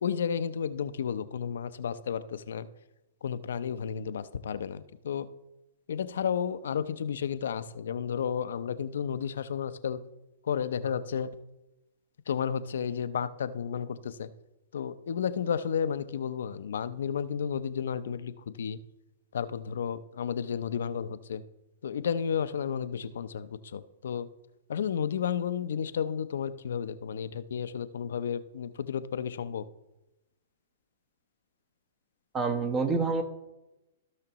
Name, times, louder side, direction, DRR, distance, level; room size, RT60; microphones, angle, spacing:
voice 1, 0.0-2.7 3.2-5.3 5.9-10.0 10.4-11.3 12.3-14.3 14.7-18.8 19.3-21.4 21.8-24.3 24.7-29.6, left 7 dB, 70° left, 13 dB, 0.5 m, -32 dB
voice 2, 32.3-33.2, right 4 dB, 25° right, 7 dB, 0.9 m, -27 dB
15.5 x 5.7 x 3.0 m, 0.98 s
hypercardioid pair, 120°, 0 cm